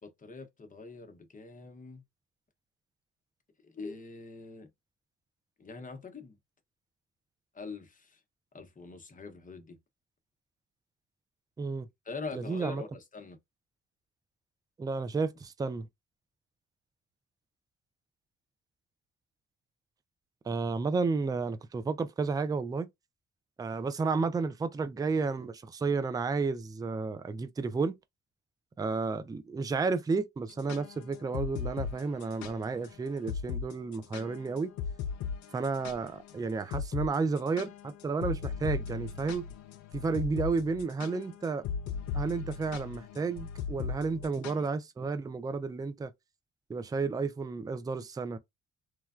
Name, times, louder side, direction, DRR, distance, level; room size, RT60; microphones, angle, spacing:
voice 1, 0.0-2.0 3.6-4.7 5.6-6.4 7.5-8.2 8.5-9.8 12.0-13.4, left 4 dB, 25° left, 0.8 m, -43 dB
voice 2, 11.6-11.9 12.3-12.8 14.8-15.9 20.5-22.9 23.6-28.0 28.8-34.7 35.5-39.5 39.9-41.6 42.1-46.1 46.7-48.4, right 4 dB, 15° right, 0.3 m, -32 dB
sound 1, 30.5-32.5 32.8-32.9 33.3-33.7 33.9-36.3 36.7-37.1 37.4-44.7, left 6 dB, 70° left, 0.5 m, -37 dB
3.1 x 2.2 x 2.4 m
cardioid pair, 90°, 30 cm